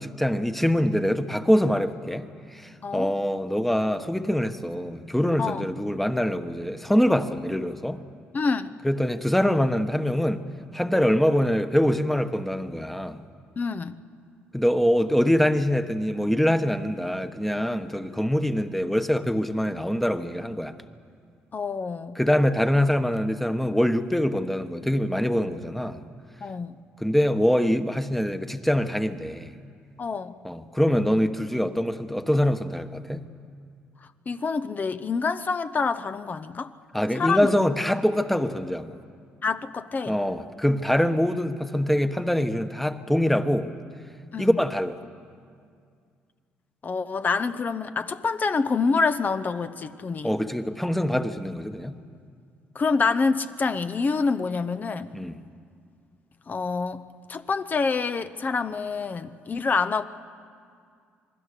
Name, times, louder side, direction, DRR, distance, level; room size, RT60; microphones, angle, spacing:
voice 1, 0.0-2.2 2.5-8.0 8.8-10.4 10.7-13.2 14.5-20.8 22.2-26.0 27.0-29.5 30.4-33.2 36.9-39.0 40.1-43.7 44.4-45.0 50.2-51.9 55.1-55.4, equal, 5° left, 9 dB, 1.3 m, -24 dB
voice 2, 8.3-8.7 13.6-14.0 21.5-22.2 26.4-26.8 30.0-30.3 34.3-36.7 37.1-37.5 39.4-40.2 44.3-44.6 46.8-50.3 52.7-55.1 56.5-57.0 57.3-60.0, left 4 dB, 40° left, 11 dB, 0.9 m, -26 dB
27.0 x 20.5 x 6.8 m, 2.2 s
supercardioid pair, 70°, 4 cm